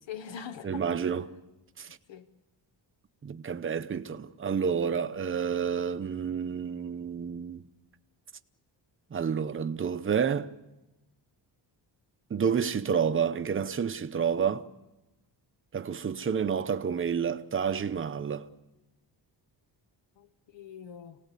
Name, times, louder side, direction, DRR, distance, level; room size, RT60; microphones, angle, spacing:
voice 1, 0.1-1.0 2.1-2.3 20.2-21.2, left 8 dB, 70° left, 1.1 m, -43 dB
voice 2, 0.6-1.3 1.8-1.9 3.2-7.6 9.1-10.5 12.3-14.6 15.7-18.5, right 7 dB, 30° right, 0.7 m, -29 dB
26.5 x 18.0 x 8.3 m
wide cardioid pair, 165°, 45 cm